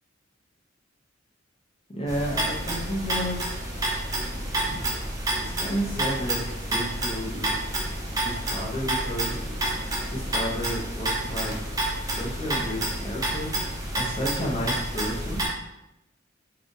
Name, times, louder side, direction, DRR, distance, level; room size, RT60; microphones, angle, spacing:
voice 1, 1.9-3.5 5.4-7.5 8.2-9.3 10.1-11.6 12.2-13.5 13.9-15.4, equal, 30° left, -2 dB, 0.8 m, -31 dB
sound 1, 2.1-15.5, right 1 dB, 20° right, 0.7 m, -29 dB
4.8 x 2.4 x 3.2 m, 0.89 s
head